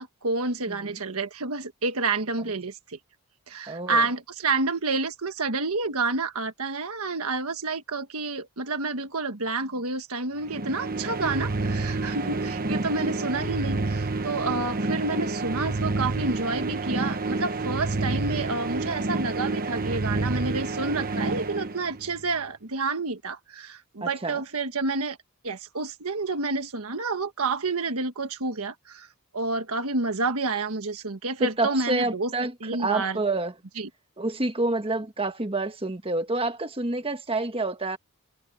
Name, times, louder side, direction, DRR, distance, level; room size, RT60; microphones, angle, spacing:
voice 1, 0.0-3.0 3.5-25.2 25.4-29.1 29.3-32.3 32.6-33.2 33.8-33.9, right 3 dB, 75° right, 1.5 m, -29 dB
voice 2, 0.7-1.0 3.7-4.0 12.2-12.7 24.0-24.4 31.4-33.5 34.2-38.0, right 2 dB, 25° right, 1.6 m, -28 dB
sound 1, 10.4-22.3, right 3 dB, 40° right, 1.0 m, -29 dB
head